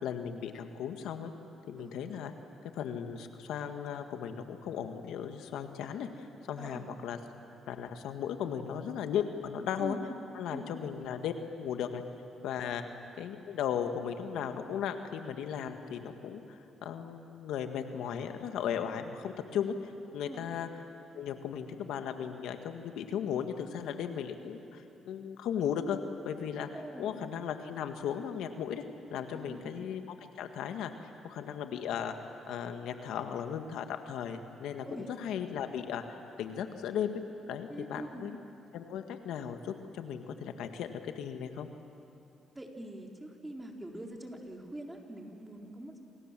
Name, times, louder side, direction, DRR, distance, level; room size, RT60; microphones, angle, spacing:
voice 1, 0.0-1.3 1.7-2.3 2.7-7.2 7.7-10.0 10.3-12.0 12.4-12.8 13.2-19.7 20.1-20.7 21.1-26.0 26.2-26.7 27.0-28.8 29.1-32.1 32.5-34.8 35.2-37.2 37.5-38.4 38.7-41.7, left 8 dB, 85° left, 7 dB, 1.7 m, -36 dB
voice 2, 6.6-6.9 9.8-10.0 10.5-10.7 20.2-20.4 26.7-27.2 29.3-29.7 34.9-35.1 37.7-38.3 42.5-46.0, right 1 dB, 15° right, 1 dB, 4.0 m, -44 dB
28.0 x 27.5 x 7.6 m, 2.7 s
cardioid pair, 90°, 0 cm